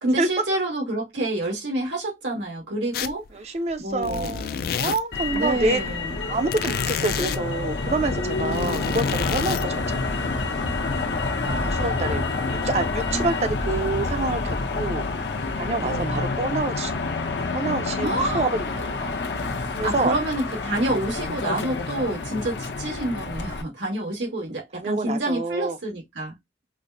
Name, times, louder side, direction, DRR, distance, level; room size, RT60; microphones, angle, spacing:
voice 1, 0.0-3.5 3.8-4.3 5.3-6.2 11.4-12.4 13.1-13.4 15.8-16.2 18.0-18.4 19.8-26.3, right 1 dB, 90° right, 1.6 m, -28 dB
sound 1, 2.9-3.3 3.7-5.2 6.5-7.4 8.4-9.7, left 7 dB, 55° left, 0.3 m, -29 dB
voice 2, 3.3-5.8 6.3-10.3 11.7-15.0 15.6-16.9 17.5-19.1 19.8-20.1 24.8-25.8, right 2 dB, 35° right, 0.5 m, -27 dB
Motor vehicle (road), 5.1-23.6, left 3 dB, 80° left, 0.8 m, -28 dB
5.0 x 2.0 x 2.6 m
head